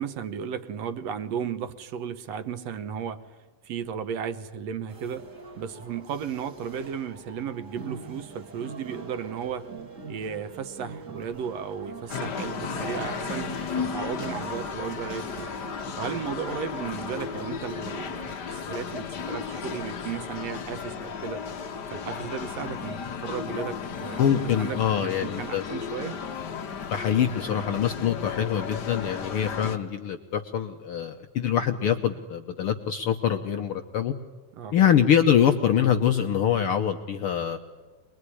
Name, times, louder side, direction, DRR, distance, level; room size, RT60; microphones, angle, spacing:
voice 1, 0.0-3.4 3.6-5.3 5.6-9.7 10.1-15.5 16.0-21.4 21.9-26.2 34.5-34.8, right 7 dB, 65° right, 11 dB, 1.8 m, -35 dB
sound 1, 4.9-17.6, right 4 dB, 30° right, 1.9 m, -42 dB
sound 2, 12.1-29.8, left 6 dB, 60° left, 1.1 m, -34 dB
voice 2, 24.2-25.6 26.8-34.1 34.7-37.6, left 9 dB, 80° left, 6 dB, 1.2 m, -24 dB
25.0 x 21.5 x 9.8 m, 1.4 s
omnidirectional pair, 3.8 m